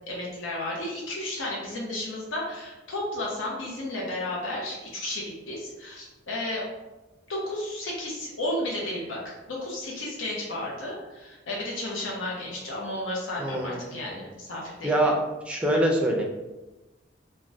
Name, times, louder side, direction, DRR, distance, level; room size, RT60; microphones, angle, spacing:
voice 1, 0.1-6.6 7.3-15.1, left 1 dB, 85° left, -3 dB, 0.6 m, -33 dB
voice 2, 13.4-13.8 14.8-15.2 15.5-16.2, right 1 dB, 5° right, -2 dB, 0.4 m, -24 dB
3.4 x 2.1 x 2.6 m, 1.1 s
head